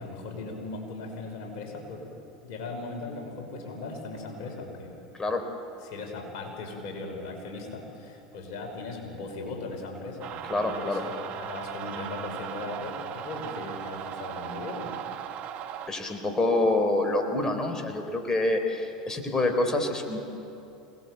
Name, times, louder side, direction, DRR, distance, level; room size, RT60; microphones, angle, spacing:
voice 1, 0.0-2.0 2.4-4.9 5.8-14.9, left 3 dB, 60° left, 2 dB, 5.5 m, -38 dB
tremolos delays, 10.2-15.9, right 9 dB, 50° right, 1.6 m, -38 dB
voice 2, 10.5-11.0 15.9-20.2, left 2 dB, 20° left, 5 dB, 3.8 m, -26 dB
28.0 x 19.5 x 8.2 m, 2.9 s
hypercardioid pair, 85°, 3 cm